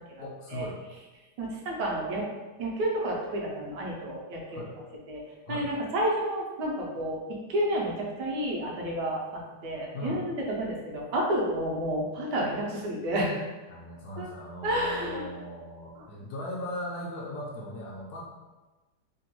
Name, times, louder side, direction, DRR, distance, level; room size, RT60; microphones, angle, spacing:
voice 1, 0.2-0.8 4.5-4.7 5.5-5.7 9.9-10.2 13.7-18.2, left 1 dB, 70° left, -3 dB, 1.0 m, -38 dB
voice 2, 1.4-2.2 2.6-4.6 5.1-5.2 5.5-7.2 7.5-9.2 9.6-13.4 14.2-14.3 14.6-15.3, right 1 dB, 75° right, -2 dB, 1.2 m, -30 dB
3.3 x 2.2 x 2.9 m, 1.2 s
omnidirectional pair, 1.9 m